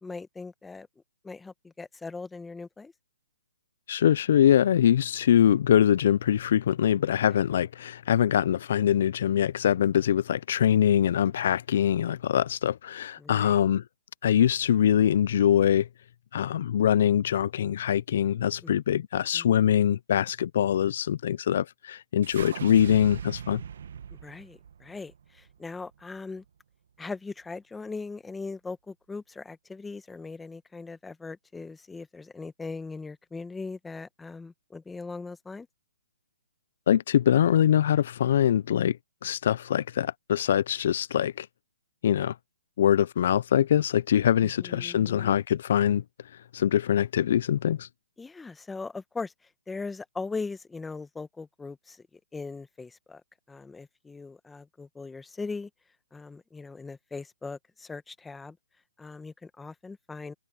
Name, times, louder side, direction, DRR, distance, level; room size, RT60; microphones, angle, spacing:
voice 1, 0.0-0.9 1.2-2.9 13.2-13.6 18.6-18.8 19.3-19.7 24.1-26.4 27.0-35.7 44.3-45.3 48.2-53.2 53.5-55.7 56.1-58.6 59.0-60.3, left 4 dB, 5° left, 1.2 m, -40 dB
voice 2, 3.9-13.8 14.2-15.9 16.3-23.6 36.9-39.0 39.2-41.5 42.0-42.4 42.8-46.0 46.5-47.9, left 10 dB, 55° left, 0.3 m, -23 dB
sound 1, 22.2-26.5, right 8 dB, 60° right, 1.3 m, -40 dB
hypercardioid pair, 155°, 0 cm